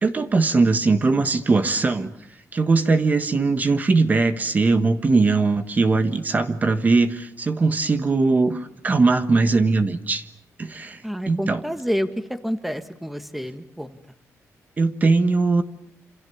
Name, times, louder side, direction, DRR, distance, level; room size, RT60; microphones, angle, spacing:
voice 1, 0.0-2.1 2.5-10.2 10.6-11.0 11.3-11.6 14.8-15.6, right 3 dB, 30° right, 9 dB, 1.4 m, -20 dB
voice 2, 11.0-13.9, equal, ahead, 9 dB, 1.5 m, -28 dB
28.0 x 27.5 x 7.2 m, 0.69 s
wide cardioid pair, 145°, 6 cm